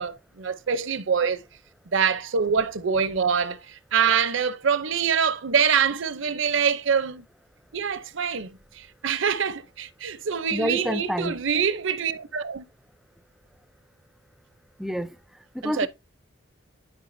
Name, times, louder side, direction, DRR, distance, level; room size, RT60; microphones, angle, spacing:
voice 1, 0.0-1.4 1.9-7.2 7.7-12.6 15.6-15.9, right 6 dB, 65° right, 0.7 m, -25 dB
voice 2, 10.5-11.4 14.8-15.1 15.5-15.9, equal, ahead, 0.4 m, -28 dB
11.5 x 4.6 x 2.6 m
head